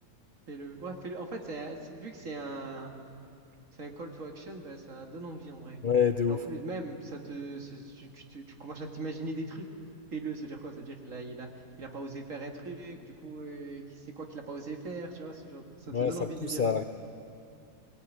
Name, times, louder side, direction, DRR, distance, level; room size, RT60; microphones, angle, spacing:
voice 1, 0.5-2.9 3.8-5.8 6.3-9.7 10.1-11.5 11.8-16.6, right 3 dB, 60° right, 3 dB, 2.2 m, -40 dB
voice 2, 5.8-6.4 15.9-16.8, left 6 dB, 50° left, 8 dB, 0.6 m, -27 dB
21.0 x 18.0 x 9.3 m, 2.6 s
omnidirectional pair, 1.6 m